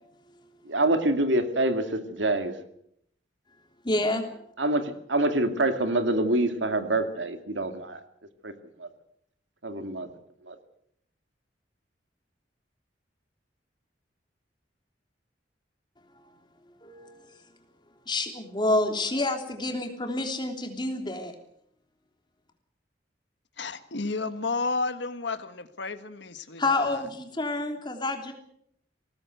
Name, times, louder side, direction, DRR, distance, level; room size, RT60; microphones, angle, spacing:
voice 1, 0.7-2.6 4.6-8.0 8.4-8.5 8.8-8.9 9.6-10.1 10.5-10.6, right 2 dB, 85° right, 8 dB, 2.3 m, -26 dB
voice 2, 3.8-4.5 16.1-16.4 16.8-17.4 18.0-21.3 26.6-28.3, left 2 dB, 25° left, 4 dB, 3.2 m, -29 dB
voice 3, 23.6-27.0, left 3 dB, 70° left, 11 dB, 1.6 m, -32 dB
21.0 x 18.0 x 8.0 m, 0.70 s
head